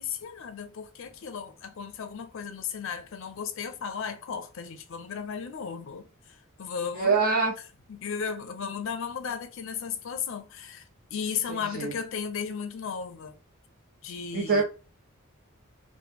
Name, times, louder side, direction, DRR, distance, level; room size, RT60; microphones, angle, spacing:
voice 1, 0.0-7.2 7.9-13.3 14.0-14.6, left 6 dB, 65° left, 0.4 m, -35 dB
voice 2, 6.9-7.5 11.5-11.9 14.3-14.6, right 4 dB, 45° right, 0.6 m, -25 dB
2.9 x 2.1 x 3.3 m
head